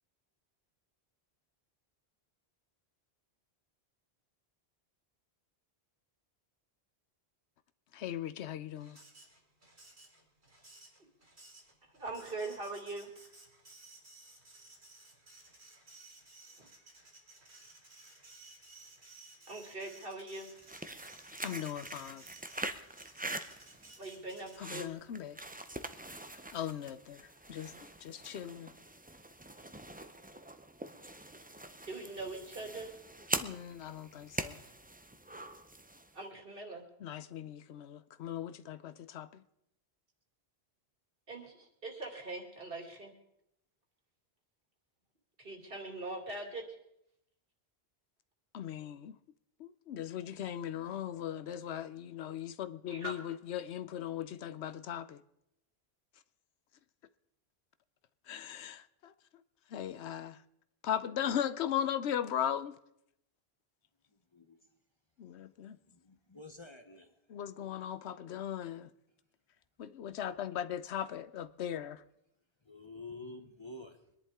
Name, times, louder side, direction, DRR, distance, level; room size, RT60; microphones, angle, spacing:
voice 1, 7.9-9.0 21.4-22.2 24.6-25.4 26.5-27.2 27.5-27.7 28.0-28.7 33.4-34.6 37.0-39.4 48.5-49.2 49.6-55.2 58.3-59.1 59.7-60.4 60.8-62.7 65.2-65.8 67.3-68.9 69.8-72.0, left 10 dB, 90° left, 1.0 m, -38 dB
Printer, 8.7-24.9, right 2 dB, 85° right, 3.5 m, -57 dB
voice 2, 11.9-13.1 16.6-16.7 19.5-20.5 24.0-24.9 31.9-32.9 36.1-36.8 41.3-43.1 45.4-46.6 52.9-53.2, right 2 dB, 60° right, 2.6 m, -42 dB
sound 1, 20.6-36.2, right 1 dB, 10° right, 0.5 m, -43 dB
voice 3, 65.9-67.2 72.6-74.1, left 2 dB, 30° left, 0.9 m, -49 dB
23.5 x 11.0 x 3.6 m
omnidirectional pair, 1.1 m